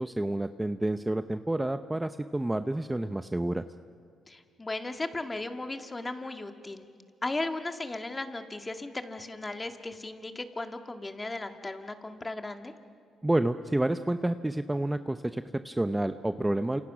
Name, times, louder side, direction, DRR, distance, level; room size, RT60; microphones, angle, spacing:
voice 1, 0.0-3.6 13.2-16.8, right 1 dB, 10° right, 10 dB, 0.7 m, -29 dB
voice 2, 4.3-6.9 7.2-12.7, left 2 dB, 20° left, 6 dB, 1.9 m, -36 dB
29.0 x 27.0 x 6.1 m, 2.3 s
cardioid pair, 90°, 0 cm